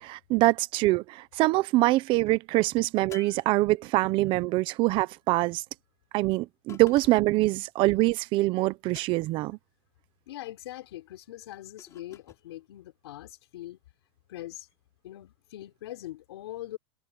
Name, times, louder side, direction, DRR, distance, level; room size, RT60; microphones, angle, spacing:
voice 1, 0.0-5.6 6.1-9.6, right 19 dB, 40° right, 1.0 m, -24 dB
sound 1, 3.1-4.2 6.7-7.5 8.9-9.5 11.8-12.4, left 8 dB, 20° left, 5.1 m, -50 dB
voice 2, 10.3-13.8 14.3-14.7 15.0-16.8, left 14 dB, 75° left, 4.6 m, -42 dB
supercardioid pair, 145°, 14 cm